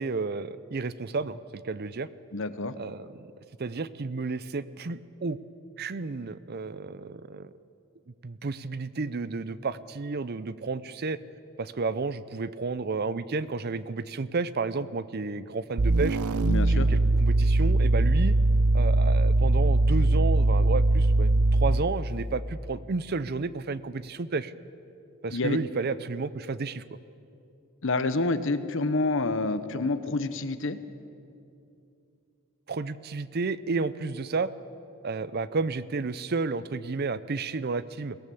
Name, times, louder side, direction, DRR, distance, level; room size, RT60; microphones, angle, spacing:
voice 1, 0.0-2.1 2.8-3.3 3.6-5.4 5.8-7.5 8.2-11.2 11.6-16.2 16.7-18.3 18.7-24.5 25.2-26.8 32.7-34.5 35.0-38.2, right 4 dB, 45° right, 16 dB, 0.5 m, -31 dB
voice 2, 2.3-2.7 16.5-16.9 25.3-25.6 27.8-30.8, left 3 dB, 60° left, 12 dB, 1.0 m, -28 dB
sound 1, 15.8-21.9, right 2 dB, 80° right, 0.7 m, -21 dB
23.0 x 17.5 x 7.1 m, 2.6 s
head